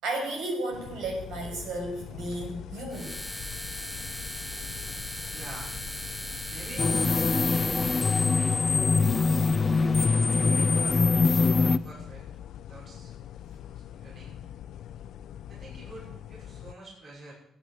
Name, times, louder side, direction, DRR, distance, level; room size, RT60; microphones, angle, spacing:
voice 1, 0.0-3.1, right 2 dB, 90° right, 2 dB, 6.4 m, -33 dB
sound 1, 0.7-16.7, left 10 dB, 80° left, 0.7 m, -43 dB
sound 2, 2.9-8.4, left 1 dB, 5° left, 1.8 m, -38 dB
voice 2, 5.3-5.8 6.5-7.8 8.3-9.5 10.4-12.3 12.7-13.1 13.7-14.4 15.5-17.3, right 2 dB, 50° right, -3 dB, 5.8 m, -46 dB
sound 3, 6.8-11.8, left 4 dB, 30° left, 0.8 m, -23 dB
16.0 x 9.6 x 8.9 m, 0.79 s
cardioid pair, 90°, 0 cm